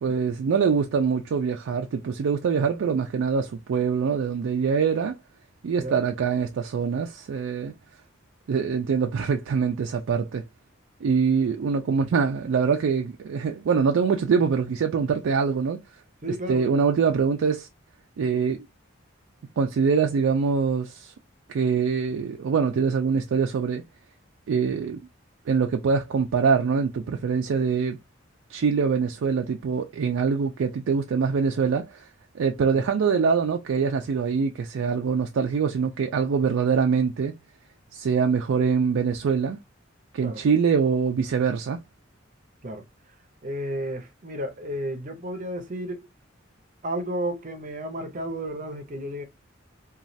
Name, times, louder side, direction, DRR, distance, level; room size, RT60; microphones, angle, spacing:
voice 1, 0.0-5.2 5.6-7.8 8.5-10.4 11.0-15.8 16.5-17.7 18.2-18.7 19.6-21.1 21.5-23.8 24.5-25.0 25.5-28.0 28.5-32.1 32.3-37.4 37.9-39.6 40.1-41.8, right 6 dB, 75° right, 0.3 m, -24 dB
voice 2, 16.2-16.8 32.7-32.8 40.2-40.4 42.6-42.8 43.4-46.1 46.8-49.2, right 1 dB, 40° right, 0.6 m, -33 dB
3.0 x 2.3 x 2.6 m
head